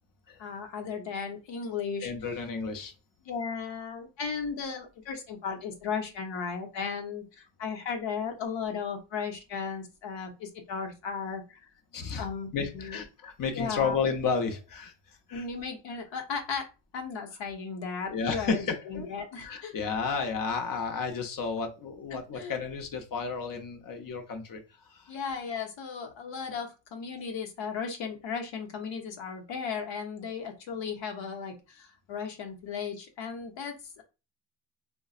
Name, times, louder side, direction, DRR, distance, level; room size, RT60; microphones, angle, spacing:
voice 1, 0.4-2.1 3.2-11.6 12.2-13.0 13.5-14.0 15.3-16.7 16.9-19.7 22.1-22.5 25.1-34.0, left 5 dB, 80° left, 4 dB, 0.9 m, -35 dB
voice 2, 2.0-2.9 11.9-12.3 12.5-14.9 15.3-15.4 18.1-19.1 19.4-24.6 24.9-25.1, left 5 dB, 45° left, 4 dB, 0.8 m, -32 dB
3.9 x 2.2 x 2.4 m, 0.29 s
cardioid pair, 120°, 45 cm